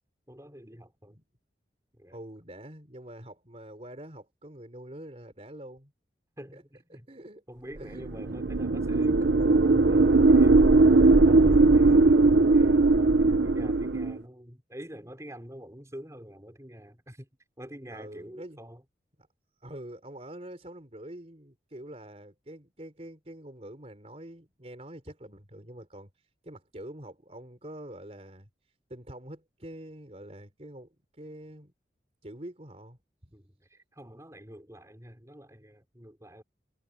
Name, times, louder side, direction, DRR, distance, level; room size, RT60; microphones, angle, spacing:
voice 1, 0.3-1.2 1.9-2.2 6.4-7.1 7.5-17.3 17.6-18.8 33.3-36.4, equal, 15° right, 5.4 m, -47 dB
voice 2, 2.1-5.9 6.5-6.6 6.9-7.4 7.8-8.4 17.9-18.6 19.6-26.1 26.4-28.5 28.9-31.7 32.2-33.3, right 1 dB, 35° right, 4.0 m, -45 dB
sound 1, 8.0-14.2, right 3 dB, 85° right, 0.9 m, -19 dB
head